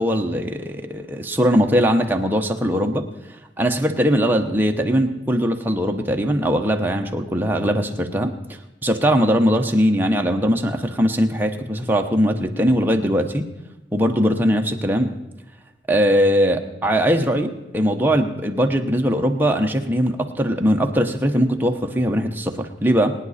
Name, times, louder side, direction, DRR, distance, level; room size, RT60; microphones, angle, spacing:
voice 1, 0.0-3.1 3.6-8.3 8.8-13.5 13.9-15.1 15.9-23.1, equal, 10° right, 3 dB, 0.9 m, -20 dB
23.0 x 9.8 x 4.2 m, 1.0 s
head